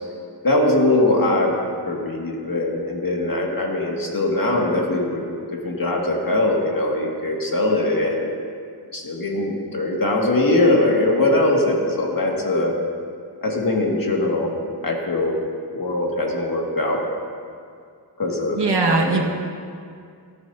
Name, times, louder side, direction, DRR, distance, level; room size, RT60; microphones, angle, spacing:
voice 1, 0.4-1.5 1.9-5.2 5.5-8.3 8.9-12.7 13.4-14.5 14.8-15.3 15.7-17.0 18.2-18.6 18.8-19.2, left 2 dB, 50° left, -1 dB, 2.1 m, -21 dB
voice 2, 18.5-19.2, right 3 dB, 70° right, -1 dB, 1.7 m, -20 dB
17.5 x 13.0 x 2.8 m, 2.3 s
wide cardioid pair, 85°, 43 cm